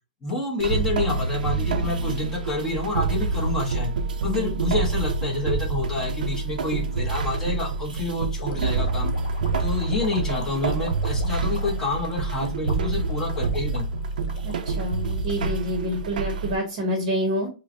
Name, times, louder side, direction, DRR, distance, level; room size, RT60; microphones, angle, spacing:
voice 1, 0.2-3.9 4.2-9.1 9.6-14.0, left 2 dB, 10° left, -1 dB, 0.9 m, -28 dB
sound 1, 0.6-16.5, right 3 dB, 75° right, 0.6 m, -27 dB
sound 2, 8.4-15.7, left 3 dB, 60° left, 1.1 m, -42 dB
voice 2, 14.4-17.5, equal, 30° right, 2 dB, 0.9 m, -28 dB
5.4 x 2.1 x 2.6 m, 0.33 s
hypercardioid pair, 175°, 5 cm